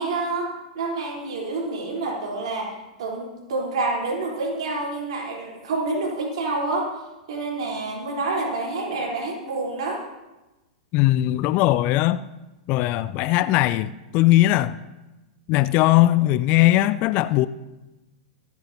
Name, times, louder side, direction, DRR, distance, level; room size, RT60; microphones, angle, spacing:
voice 1, 0.0-6.9 7.3-10.0, right 3 dB, 60° right, 3.7 m, -28 dB
voice 2, 10.9-12.2 12.7-14.7 15.5-17.5, left 15 dB, 40° left, 0.4 m, -19 dB
24.5 x 9.3 x 2.8 m
figure-of-eight pair, 100°, 4 cm